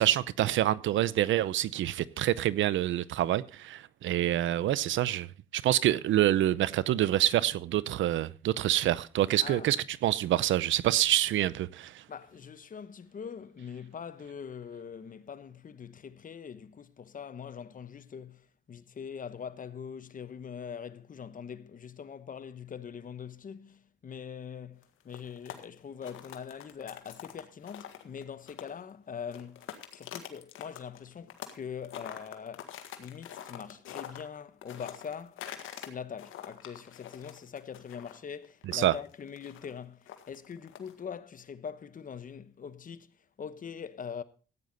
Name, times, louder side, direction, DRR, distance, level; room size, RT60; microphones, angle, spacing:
voice 1, 0.0-5.3 5.5-9.8 10.0-12.0 38.7-38.9, right 13 dB, 75° right, 0.7 m, -26 dB
voice 2, 9.4-9.8 12.1-32.7 33.0-35.5 35.7-43.1 43.4-44.2, left 7 dB, 45° left, 1.0 m, -43 dB
sound 1, 24.8-28.9 29.2-31.6 31.8-35.9 36.2-41.0, left 11 dB, 85° left, 1.7 m, -45 dB
15.0 x 9.4 x 4.0 m
cardioid pair, 90°, 20 cm